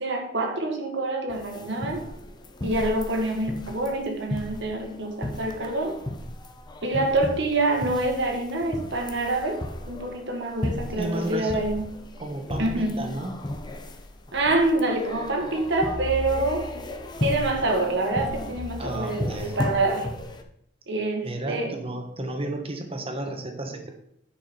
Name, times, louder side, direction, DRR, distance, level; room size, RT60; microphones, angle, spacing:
voice 1, 0.0-2.0 2.6-6.0 6.8-9.6 9.9-11.9 12.6-13.0 14.3-16.7 17.2-20.1 20.9-21.8, right 2 dB, 65° right, 2 dB, 1.7 m, -26 dB
sound 1, 1.3-20.4, left 1 dB, 20° left, 0.8 m, -35 dB
voice 2, 11.0-11.6 12.2-13.3 18.8-19.6 21.2-23.9, right 1 dB, 30° right, 4 dB, 1.4 m, -32 dB
9.5 x 6.2 x 4.4 m, 0.72 s
head